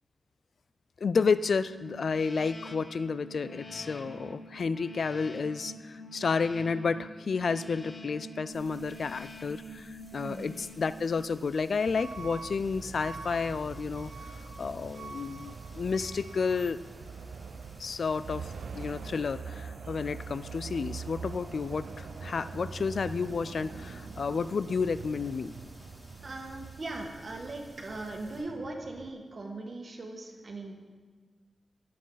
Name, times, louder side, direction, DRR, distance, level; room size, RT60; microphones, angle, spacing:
voice 1, 1.0-14.1 14.6-16.8 17.8-25.5, left 5 dB, 60° left, 14 dB, 0.4 m, -31 dB
sound 1, 1.6-11.5, equal, 40° left, 1.0 m, -46 dB
sound 2, 8.5-28.4, equal, 5° right, 3.7 m, -56 dB
voice 2, 10.2-10.5 26.2-30.8, right 2 dB, 45° right, 1 dB, 1.6 m, -39 dB
Truck / Alarm, 11.9-29.1, right 5 dB, 85° right, 0.7 m, -43 dB
22.5 x 7.6 x 4.0 m, 1.4 s
wide cardioid pair, 160°, 0 cm